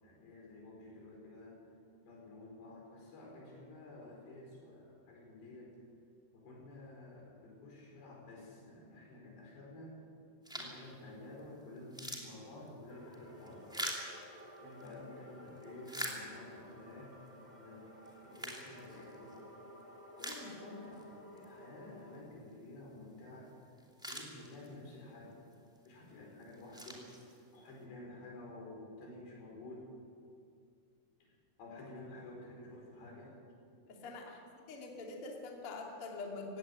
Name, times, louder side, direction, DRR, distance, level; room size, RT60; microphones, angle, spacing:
voice 1, 0.0-1.6 2.0-5.7 6.3-10.0 10.5-13.7 14.6-17.2 17.4-19.5 20.2-23.5 24.1-25.5 25.9-27.1 27.5-29.9 31.2-33.3, left 2 dB, 85° left, -1 dB, 6.9 m, -51 dB
sound 1, 10.4-10.9 11.4-11.5 11.8-14.9 15.5-16.7 17.3-17.4 18.1-19.4 19.8-19.9 20.2-21.0 21.4-21.5 23.5-23.6 23.8-24.9 25.5-25.9 26.4-27.7, equal, ahead, 1.6 m, -44 dB
sound 2, 12.9-22.2, equal, 25° right, 0.9 m, -55 dB
voice 2, 33.9-34.4 34.7-36.6, left 3 dB, 40° left, 0 dB, 2.9 m, -44 dB
17.5 x 16.5 x 9.7 m, 2.3 s
omnidirectional pair, 4.8 m